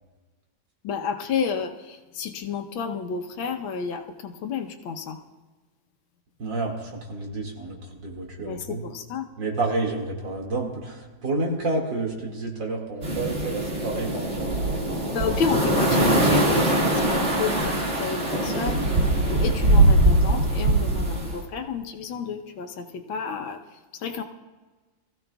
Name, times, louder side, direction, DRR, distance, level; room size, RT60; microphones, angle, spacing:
voice 1, 0.8-5.2 8.4-9.2 15.1-18.9 19.3-23.6 23.9-24.2, left 6 dB, 80° left, 4 dB, 1.7 m, -31 dB
voice 2, 6.4-8.8 9.4-15.2, right 2 dB, 60° right, 0 dB, 2.8 m, -30 dB
sound 1, 13.0-21.4, right 1 dB, 35° right, 2.2 m, -22 dB
23.5 x 15.0 x 2.3 m, 1.3 s
omnidirectional pair, 2.2 m